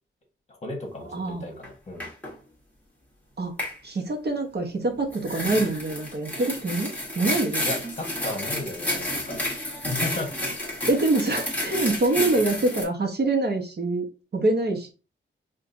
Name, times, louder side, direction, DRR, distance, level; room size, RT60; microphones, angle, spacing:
voice 1, 0.5-2.1 7.6-9.4 9.8-10.5, left 2 dB, 35° left, 1 dB, 1.4 m, -34 dB
voice 2, 1.0-1.5 3.4-3.5 3.8-7.7 10.9-14.9, right 2 dB, 50° right, 2 dB, 1.0 m, -25 dB
sound 1, 1.6-1.7 2.0-2.3 3.6-3.8 5.1-12.8, left 1 dB, 5° left, 1.4 m, -30 dB
4.9 x 2.5 x 2.6 m, 0.32 s
wide cardioid pair, 125°, 21 cm